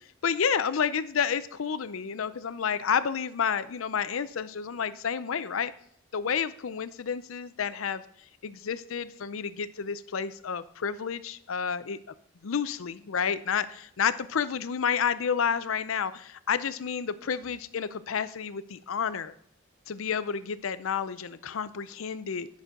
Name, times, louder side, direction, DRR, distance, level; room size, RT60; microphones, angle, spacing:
voice 1, 0.2-5.7 6.1-8.0 8.4-12.0 12.4-19.3 19.9-22.5, left 7 dB, 85° left, 14 dB, 0.5 m, -30 dB
10.5 x 6.2 x 3.7 m, 0.67 s
head